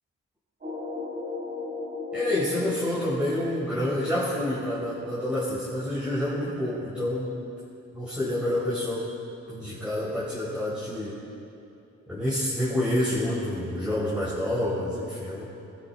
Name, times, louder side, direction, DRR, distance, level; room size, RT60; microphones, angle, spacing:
sound 1, 0.6-6.1, left 2 dB, 30° right, 3.0 m, -37 dB
voice 1, 2.1-7.3 7.9-9.0 9.5-11.1 12.1-15.4, left 1 dB, 5° right, -8 dB, 4.3 m, -28 dB
23.5 x 13.0 x 4.4 m, 2.8 s
cardioid pair, 90°, 30 cm